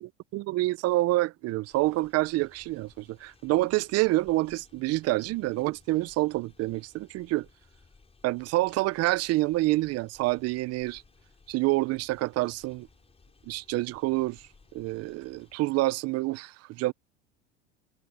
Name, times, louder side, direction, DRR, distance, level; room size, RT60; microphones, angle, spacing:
voice 1, 0.0-7.5 8.2-11.0 11.5-12.9 13.5-14.4 14.7-16.9, right 19 dB, 50° right, 0.9 m, -27 dB
sound 1, 1.6-15.6, left 4 dB, 20° left, 6.1 m, -60 dB
hypercardioid pair, 95°, 33 cm